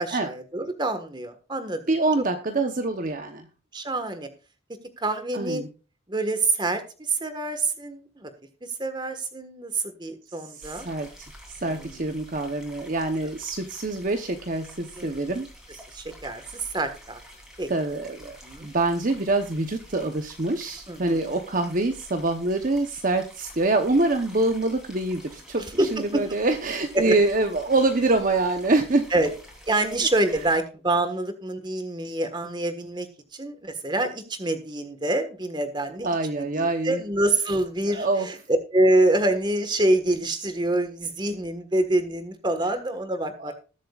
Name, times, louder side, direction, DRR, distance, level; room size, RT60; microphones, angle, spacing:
voice 1, 0.0-1.8 3.7-4.3 5.0-5.6 6.1-6.8 7.1-8.3 8.8-10.9 11.6-12.0 15.0-15.4 15.9-16.4 16.7-17.2 17.6-17.7 18.4-18.7 20.9-21.3 25.8-26.2 26.9-27.1 29.1-29.3 29.7-33.1 33.3-36.1 36.3-38.4 38.7-43.5, right 2 dB, 25° right, 9 dB, 1.5 m, -26 dB
voice 2, 1.9-3.5 5.3-5.7 10.5-11.3 11.6-15.5 17.7-29.1 36.0-37.0 37.9-38.3 43.4-43.5, right 2 dB, 45° right, 6 dB, 0.9 m, -25 dB
sound 1, 10.6-30.6, equal, 5° right, 3.3 m, -48 dB
20.5 x 7.5 x 2.4 m, 0.34 s
head